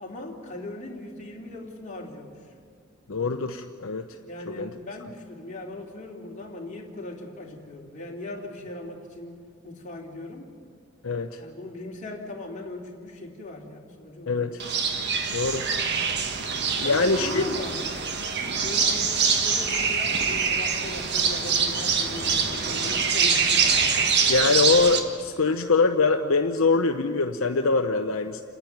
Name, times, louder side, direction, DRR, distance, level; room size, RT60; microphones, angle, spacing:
voice 1, 0.0-2.5 4.2-10.5 11.4-14.6 16.8-18.0 18.6-23.6 23.9-24.0, left 2 dB, 35° left, -1 dB, 2.9 m, -39 dB
voice 2, 3.1-4.1 4.6-4.7 11.0-11.4 14.3-14.6 15.3-15.7 16.8-17.4 24.3-28.4, left 4 dB, 70° left, 5 dB, 0.8 m, -23 dB
sound 1, 14.6-25.0, right 5 dB, 55° right, 1.5 m, -24 dB
28.5 x 10.5 x 9.2 m, 2.2 s
head